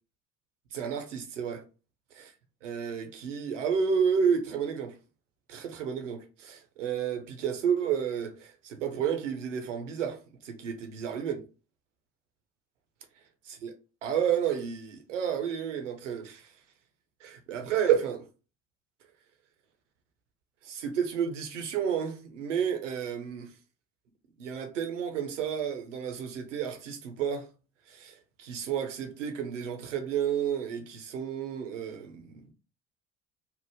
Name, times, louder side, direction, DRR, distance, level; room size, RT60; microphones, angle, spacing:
voice 1, 0.7-1.6 2.2-2.3 2.6-4.9 5.5-10.2 10.4-11.4 13.6-13.7 14.0-16.5 17.2-18.2 20.6-23.5 24.4-27.5 27.9-32.5, right 7 dB, 85° right, 0.6 m, -31 dB
2.8 x 2.1 x 3.3 m
hypercardioid pair, 55°, 36 cm